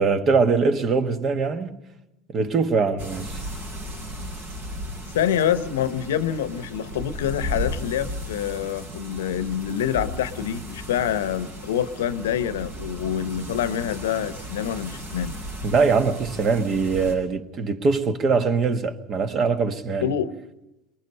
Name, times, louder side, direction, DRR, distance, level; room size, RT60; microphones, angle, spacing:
voice 1, 0.0-1.8 2.3-3.4 15.6-20.2, right 4 dB, 40° right, 1.4 m, -22 dB
sound 1, 3.0-17.2, equal, 75° right, 7.3 m, -35 dB
voice 2, 5.1-15.3 20.0-20.3, left 9 dB, 85° left, 0.8 m, -26 dB
23.5 x 20.5 x 5.5 m
hypercardioid pair, 90°, 0 cm